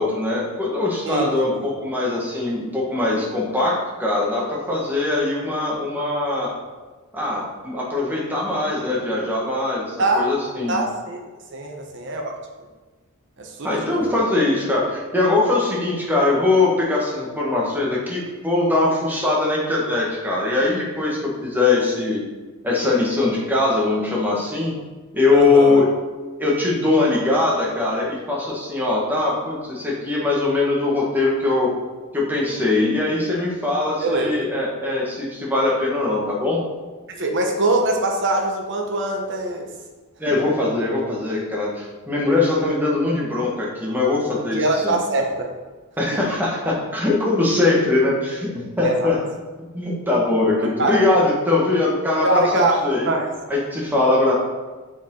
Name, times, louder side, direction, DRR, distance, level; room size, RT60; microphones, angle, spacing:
voice 1, 0.0-6.5 7.1-10.8 13.6-22.2 22.6-24.7 25.1-25.9 26.4-31.7 32.1-36.6 40.2-45.0 46.0-49.2 49.6-53.1 53.5-54.3, left 2 dB, 10° right, -4 dB, 1.5 m, -21 dB
voice 2, 1.0-1.7 10.0-10.3 10.7-11.2 11.5-12.3 13.4-14.1 25.3-25.8 34.0-34.5 37.1-39.7 44.5-45.5 46.1-46.2 48.8-49.1 50.8-51.0 52.2-53.3, right 2 dB, 60° right, 2 dB, 1.0 m, -23 dB
6.9 x 4.6 x 3.8 m, 1.3 s
head